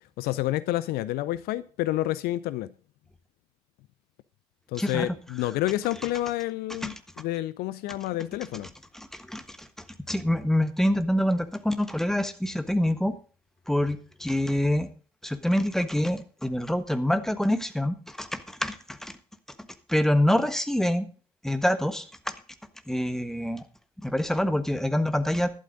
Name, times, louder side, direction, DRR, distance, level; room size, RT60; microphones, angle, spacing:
voice 1, 0.2-2.7 4.7-8.7, left 15 dB, 55° left, 0.6 m, -29 dB
voice 2, 4.8-5.1 6.8-6.9 8.9-9.7 10.1-13.1 13.7-14.9 15.2-19.1 19.9-21.1 21.4-22.3 22.9-23.6 24.0-25.5, left 1 dB, ahead, 1.3 m, -26 dB
11.5 x 11.5 x 3.9 m
figure-of-eight pair, 55°, 19 cm